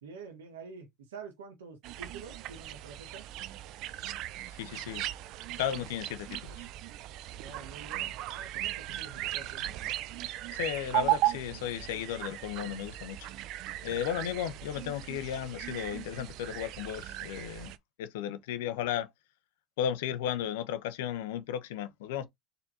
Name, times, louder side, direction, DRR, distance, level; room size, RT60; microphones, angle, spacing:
voice 1, 0.0-3.3 7.4-9.7, right 5 dB, 85° right, 1.6 m, -47 dB
sound 1, 1.8-17.8, right 15 dB, 60° right, 0.6 m, -37 dB
voice 2, 4.6-5.1 5.6-6.7 10.5-13.3 13.8-17.7 18.0-19.1 19.8-22.3, left 10 dB, 75° left, 0.9 m, -34 dB
4.5 x 4.0 x 2.8 m
hypercardioid pair, 95°, 0 cm